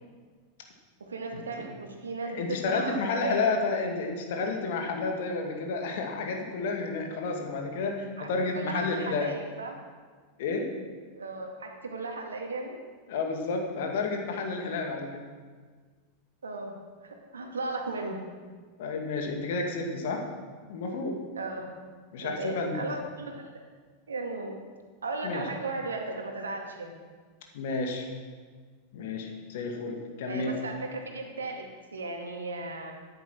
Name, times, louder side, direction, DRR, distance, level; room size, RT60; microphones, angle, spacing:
voice 1, 1.0-3.4 8.2-8.3 8.5-9.7 11.1-12.7 16.4-16.8 17.0-18.2 21.4-21.7 22.2-23.5 24.1-24.6 25.0-26.9 30.3-32.9, right 3 dB, 70° right, 2 dB, 2.1 m, -36 dB
voice 2, 2.2-9.3 10.4-10.7 13.1-15.2 18.8-20.3 20.7-21.2 22.1-22.9 25.2-25.5 27.5-28.1 28.9-30.6, left 3 dB, 55° left, 3 dB, 2.1 m, -31 dB
13.5 x 10.5 x 4.6 m, 1.5 s
figure-of-eight pair, 90°, 0 cm